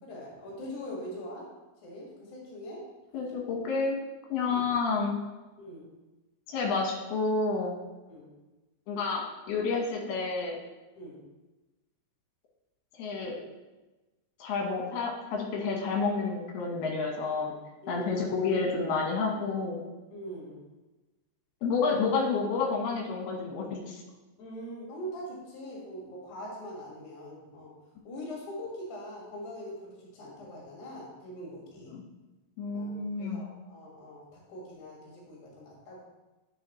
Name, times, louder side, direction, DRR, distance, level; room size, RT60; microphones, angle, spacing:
voice 1, 0.0-1.5 1.8-2.8 4.4-4.7 5.6-5.9 8.1-8.3 11.0-11.2 17.8-18.2 20.1-20.6 24.4-27.7 28.0-31.9 32.7-36.0, equal, 55° left, -4 dB, 3.0 m, -42 dB
voice 2, 3.1-4.0 4.3-5.1 6.5-7.7 8.9-10.6 13.0-13.4 14.4-17.5 17.9-19.8 21.6-24.0 31.9-32.0 32.6-33.4, left 4 dB, 70° left, 1 dB, 3.0 m, -30 dB
10.0 x 6.3 x 3.1 m, 1.1 s
omnidirectional pair, 5.0 m